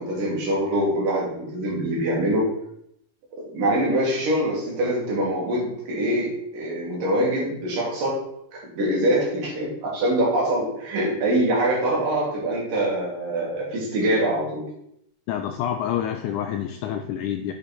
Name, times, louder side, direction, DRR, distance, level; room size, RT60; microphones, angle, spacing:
voice 1, 0.0-2.4 3.4-8.2 8.5-14.6, right 1 dB, 70° right, -4 dB, 4.0 m, -24 dB
voice 2, 15.3-17.5, left 10 dB, 85° left, 7 dB, 1.8 m, -27 dB
8.1 x 5.3 x 4.3 m, 0.74 s
omnidirectional pair, 4.0 m